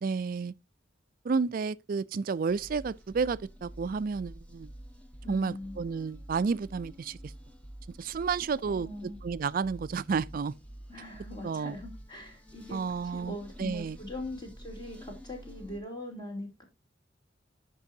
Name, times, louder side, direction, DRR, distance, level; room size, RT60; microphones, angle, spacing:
voice 1, 0.0-0.6 1.2-4.7 5.3-7.3 8.0-10.5 11.4-11.7 12.7-14.0, right 5 dB, 50° right, 0.4 m, -31 dB
sound 1, 2.4-15.8, equal, 5° left, 1.1 m, -48 dB
voice 2, 5.2-5.8 8.7-9.2 10.9-12.8 13.1-16.6, left 1 dB, 25° left, 3.0 m, -41 dB
12.0 x 5.4 x 2.7 m
head